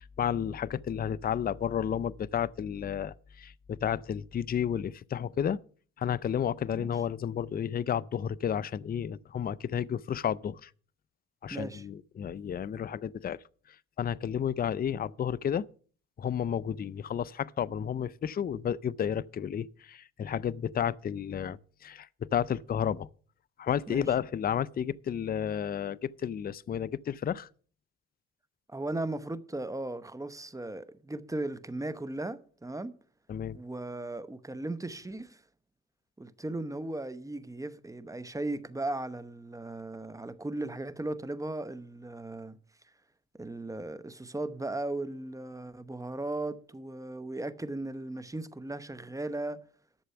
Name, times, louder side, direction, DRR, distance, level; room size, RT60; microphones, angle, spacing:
voice 1, 0.0-5.6 6.0-10.7 11.4-13.4 13.7-15.6 16.2-23.1 23.6-27.5 33.3-33.6, left 8 dB, 30° left, 0.4 m, -32 dB
voice 2, 11.5-11.8 23.9-24.1 28.7-32.9 33.5-35.4 36.2-42.6 43.3-49.6, right 2 dB, 10° right, 0.9 m, -37 dB
11.5 x 6.9 x 6.7 m
cardioid pair, 90°, 30 cm